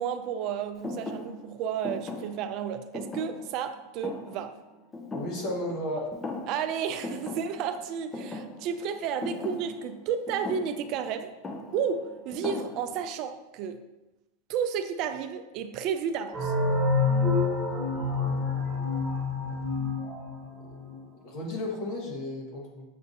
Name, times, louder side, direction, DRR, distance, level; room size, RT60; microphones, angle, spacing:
voice 1, 0.0-4.5 6.5-11.3 11.7-13.8 14.5-16.5, right 7 dB, 50° right, 9 dB, 0.3 m, -32 dB
Thump thud, 0.8-5.8 6.1-6.7 7.0-13.2, left 2 dB, 20° left, 0.6 m, -39 dB
voice 2, 5.1-6.1 20.6-22.8, left 1 dB, 55° left, 0 dB, 1.2 m, -34 dB
sound 1, 16.3-20.9, left 3 dB, 10° right, 1.4 m, -27 dB
6.7 x 2.5 x 2.7 m, 1.0 s
hypercardioid pair, 105°, 0 cm